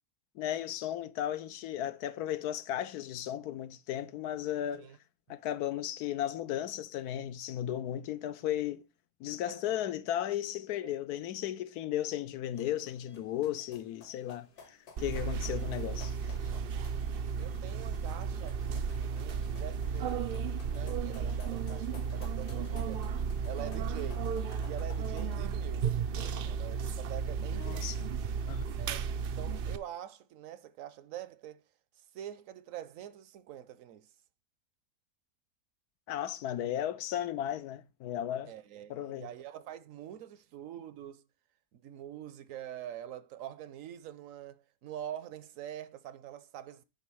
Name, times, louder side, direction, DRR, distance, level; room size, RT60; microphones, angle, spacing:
voice 1, 0.4-4.9 5.3-8.8 9.2-16.3 27.6-28.1 28.5-28.6 36.1-38.5 38.9-39.3, left 11 dB, 90° left, 1.2 m, -35 dB
voice 2, 9.4-9.8 10.8-10.9 15.2-15.3 17.4-20.3 20.7-23.1 23.4-24.3 24.6-25.9 26.5-28.0 28.8-29.0 29.4-31.6 32.1-34.1 38.5-41.2 41.7-46.8, right 11 dB, 70° right, 0.9 m, -45 dB
sound 1, 12.5-25.4, left 4 dB, 75° left, 2.2 m, -57 dB
sound 2, 15.0-29.8, right 6 dB, 90° right, 0.5 m, -34 dB
9.6 x 3.6 x 6.1 m
omnidirectional pair, 1.6 m